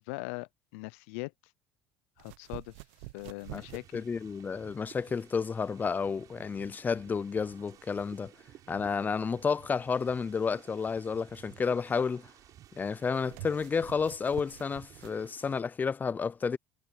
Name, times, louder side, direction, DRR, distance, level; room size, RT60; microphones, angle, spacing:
voice 1, 0.0-1.3 2.2-2.8 3.1-4.1, left 27 dB, 85° left, 0.5 m, -41 dB
sound 1, 2.2-15.2, right 22 dB, 85° right, 0.8 m, -50 dB
sound 2, 3.4-15.6, right 12 dB, 55° right, 7.7 m, -56 dB
voice 2, 3.9-8.3 8.7-12.2 12.7-16.6, left 5 dB, 25° left, 0.5 m, -31 dB
supercardioid pair, 95°, 7 cm